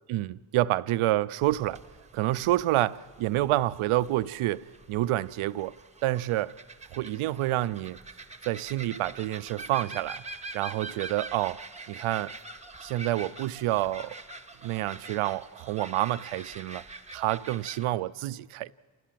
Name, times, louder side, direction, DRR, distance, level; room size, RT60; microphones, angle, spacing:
voice 1, 0.1-1.8 2.1-5.7 6.0-6.5 6.9-8.0 8.5-10.2 10.5-11.6 11.9-12.3 12.8-14.2 14.6-16.8 17.1-18.7, right 15 dB, 80° right, 0.6 m, -28 dB
sound 1, 1.4-17.9, right 3 dB, 15° right, 0.9 m, -45 dB
28.0 x 16.5 x 7.6 m
cardioid pair, 80°, 49 cm